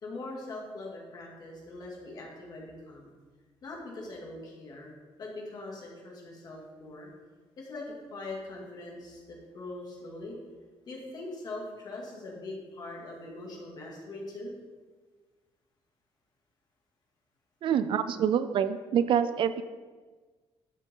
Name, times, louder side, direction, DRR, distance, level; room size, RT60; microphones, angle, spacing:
voice 1, 0.0-3.1 3.6-4.9 5.2-7.1 7.6-10.4 10.9-14.5, left 2 dB, 45° left, -2 dB, 2.5 m, -42 dB
voice 2, 17.6-19.6, right 8 dB, 60° right, 13 dB, 0.4 m, -26 dB
12.0 x 7.5 x 3.8 m, 1.4 s
cardioid pair, 165°, 10 cm